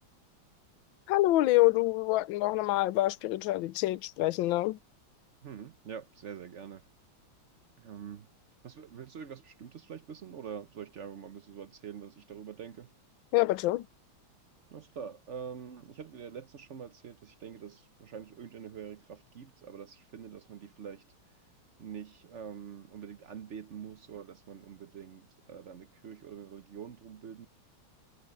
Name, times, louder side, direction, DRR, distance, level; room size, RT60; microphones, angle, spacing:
voice 1, 1.1-4.8 13.3-13.9, left 17 dB, 75° left, 1.4 m, -26 dB
voice 2, 5.4-6.9 7.8-8.3 8.6-12.9 14.7-21.0 21.8-27.5, right 7 dB, 65° right, 0.7 m, -45 dB
omnidirectional pair, 2.3 m